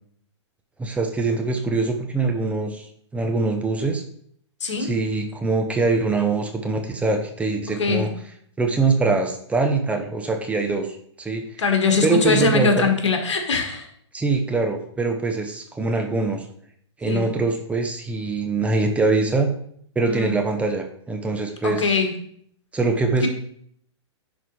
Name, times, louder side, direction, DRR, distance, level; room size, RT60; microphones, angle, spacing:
voice 1, 0.8-2.9 3.1-4.0 4.8-8.1 8.6-11.4 12.0-12.9 14.1-16.5 17.0-19.5 20.0-22.0 22.7-23.3, right 3 dB, 10° right, 4 dB, 0.7 m, -23 dB
voice 2, 4.6-4.9 7.8-8.1 11.6-13.9 17.1-17.3 20.0-20.4 21.6-22.1 23.2-23.3, left 5 dB, 75° left, 4 dB, 1.6 m, -22 dB
10.5 x 4.0 x 3.1 m, 0.63 s
hypercardioid pair, 125°, 15 cm